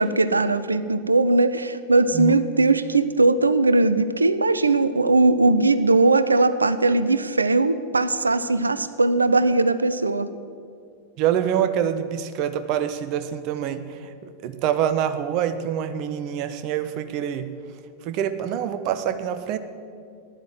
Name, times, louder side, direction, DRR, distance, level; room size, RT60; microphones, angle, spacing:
voice 1, 0.0-10.3, right 3 dB, 80° right, 14 dB, 0.6 m, -19 dB
voice 2, 11.2-17.5 18.0-19.6, right 9 dB, 40° right, 11 dB, 1.0 m, -26 dB
14.5 x 11.0 x 7.6 m, 2.4 s
figure-of-eight pair, 90°, 0 cm